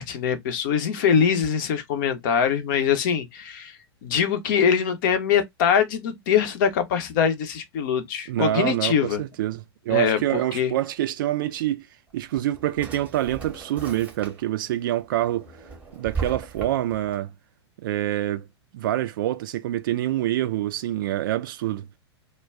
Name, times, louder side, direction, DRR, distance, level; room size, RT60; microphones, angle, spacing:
voice 1, 0.0-9.2 9.9-10.7, left 7 dB, 45° left, 0.7 m, -23 dB
voice 2, 8.3-11.9 12.1-15.5 15.9-17.3 17.8-18.5 18.7-21.8, right 13 dB, 50° right, 0.4 m, -26 dB
Drawer open or close, 12.1-14.7 15.1-17.1, right 5 dB, 10° right, 0.9 m, -37 dB
2.2 x 2.1 x 3.4 m
figure-of-eight pair, 95°, 14 cm